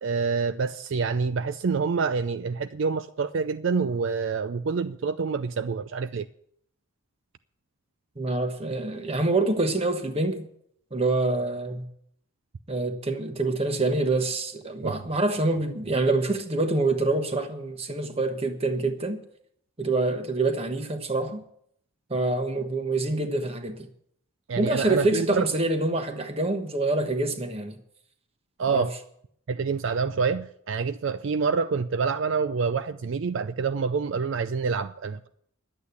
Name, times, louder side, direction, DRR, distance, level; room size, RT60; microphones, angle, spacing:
voice 1, 0.0-6.3 14.8-14.9 24.5-25.5 28.6-28.9 29.5-35.3, right 5 dB, 65° right, 0.4 m, -27 dB
voice 2, 8.2-10.5 10.9-11.8 12.7-19.2 19.8-21.4 22.1-23.9 24.6-27.8 28.7-28.9, right 2 dB, 30° right, 1.2 m, -26 dB
11.5 x 8.4 x 8.3 m
head